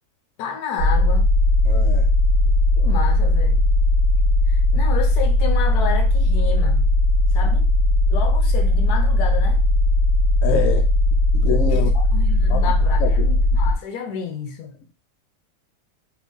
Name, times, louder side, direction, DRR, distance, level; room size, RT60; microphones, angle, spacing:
voice 1, 0.4-1.3 2.8-3.6 4.5-6.9 7.3-7.7 8.1-9.6 11.7-14.8, left 6 dB, 90° left, 1.2 m, -30 dB
sound 1, 0.8-13.7, left 1 dB, 50° left, 1.2 m, -18 dB
voice 2, 1.6-2.1 10.4-10.9 11.3-12.0 12.5-12.7 13.0-13.3, left 6 dB, 65° left, 0.9 m, -26 dB
2.9 x 2.7 x 3.5 m
omnidirectional pair, 1.6 m